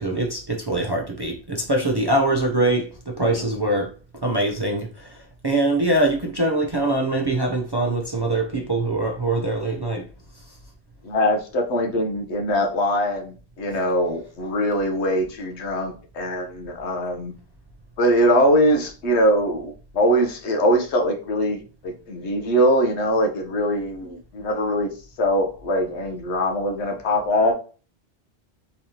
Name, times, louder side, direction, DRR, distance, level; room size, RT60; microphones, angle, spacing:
voice 1, 0.0-3.9 4.2-10.0, right 2 dB, 30° right, 0 dB, 0.5 m, -23 dB
voice 2, 11.0-17.3 18.0-24.9 25.2-27.5, equal, 85° left, 3 dB, 1.1 m, -22 dB
4.0 x 3.2 x 2.8 m, 0.37 s
omnidirectional pair, 1.1 m